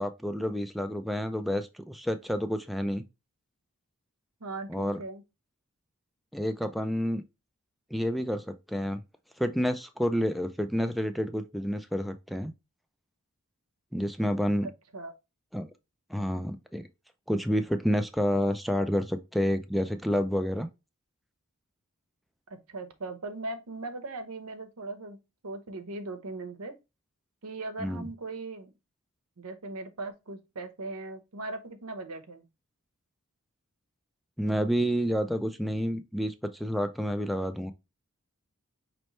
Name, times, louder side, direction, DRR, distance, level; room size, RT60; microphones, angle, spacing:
voice 1, 0.0-3.0 4.7-5.0 6.3-7.2 7.9-9.0 9.4-12.5 13.9-14.7 15.5-15.7 16.1-16.9 17.3-20.7 27.8-28.1 34.4-37.7, equal, ahead, 0.3 m, -29 dB
voice 2, 4.4-5.2 14.6-15.1 22.5-25.2 25.4-26.7 27.4-28.7 29.4-32.4, right 2 dB, 85° right, 0.9 m, -39 dB
5.3 x 3.2 x 3.0 m
head